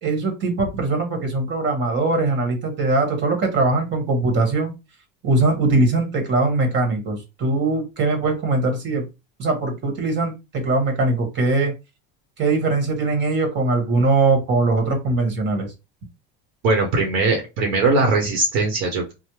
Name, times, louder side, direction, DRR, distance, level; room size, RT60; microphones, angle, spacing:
voice 1, 0.0-4.7 5.2-9.1 9.4-11.7 12.4-15.7, right 3 dB, 40° right, 4 dB, 1.3 m, -21 dB
voice 2, 16.6-19.1, right 3 dB, 65° right, 1 dB, 0.9 m, -20 dB
3.3 x 2.1 x 3.0 m, 0.25 s
supercardioid pair, 125°, 30 cm